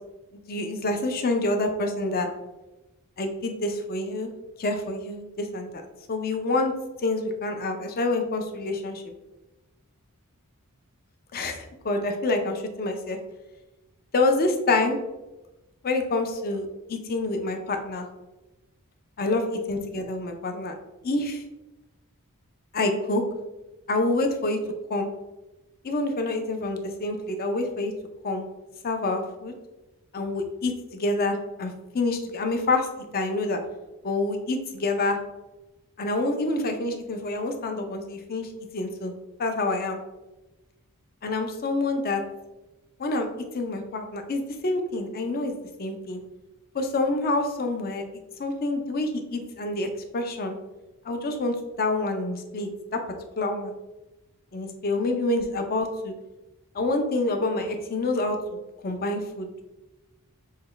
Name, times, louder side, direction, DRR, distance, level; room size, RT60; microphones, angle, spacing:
voice 1, 0.5-2.3 3.2-4.3 4.6-5.7 6.1-6.7 7.0-9.0 11.3-13.2 14.1-15.0 15.8-18.1 19.2-20.7 21.0-21.4 22.7-23.2 23.9-24.6 24.9-25.1 25.8-27.9 28.2-28.5 28.8-29.5 30.1-32.9 33.1-33.6 34.0-35.2 36.0-39.1 39.4-40.0 41.2-42.2 43.0-43.3 43.5-45.5 45.8-46.2 46.7-48.0 48.4-49.9 50.1-50.6 51.1-53.0 53.4-53.8 54.5-56.1 56.7-59.6, left 2 dB, 40° left, 5 dB, 0.5 m, -27 dB
6.4 x 2.2 x 3.3 m, 1.0 s
head